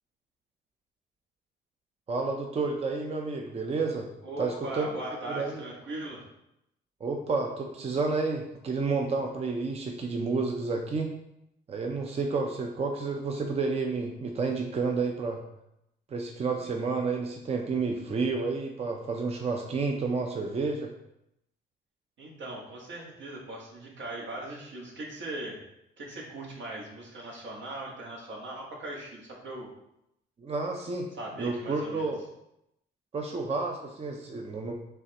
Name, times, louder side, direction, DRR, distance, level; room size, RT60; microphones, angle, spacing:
voice 1, 2.1-4.1 4.4-4.9 5.3-5.6 7.0-11.1 11.7-15.4 16.1-20.9 30.4-31.1 31.4-32.2 33.1-34.7, right 4 dB, 30° right, 2 dB, 0.6 m, -30 dB
voice 2, 4.2-6.2 16.6-16.7 22.2-25.6 26.0-29.7 31.2-32.1, right 1 dB, 70° right, -2 dB, 1.5 m, -39 dB
5.5 x 3.3 x 2.9 m, 0.83 s
cardioid pair, 90°, 20 cm